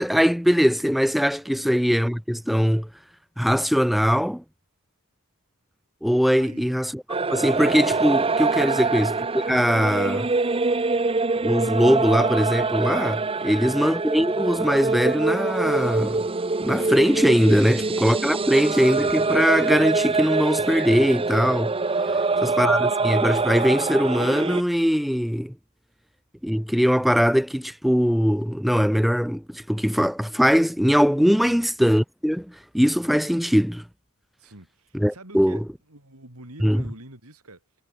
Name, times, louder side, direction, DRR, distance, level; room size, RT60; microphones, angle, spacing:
voice 1, 0.0-2.9 3.4-4.4 6.0-7.0 7.3-10.3 11.4-16.2 16.6-21.7 22.4-25.5 26.4-33.8 34.9-35.6 36.6-36.8, equal, ahead, 0.3 m, -21 dB
voice 2, 6.3-6.7 8.7-8.9 18.4-18.6 22.1-22.5 31.4-31.6 34.4-37.6, right 1 dB, 75° right, 5.3 m, -47 dB
sound 1, 7.1-24.6, right 3 dB, 25° right, 0.8 m, -24 dB
head